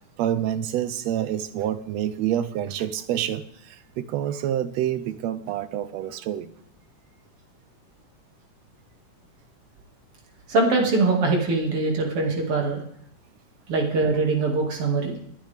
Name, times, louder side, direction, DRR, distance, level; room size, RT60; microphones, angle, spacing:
voice 1, 0.2-6.5, right 11 dB, 75° right, 13 dB, 1.7 m, -27 dB
voice 2, 10.5-12.8 13.7-15.2, right 3 dB, 50° right, 1 dB, 3.1 m, -22 dB
21.0 x 9.0 x 3.5 m, 0.69 s
omnidirectional pair, 3.5 m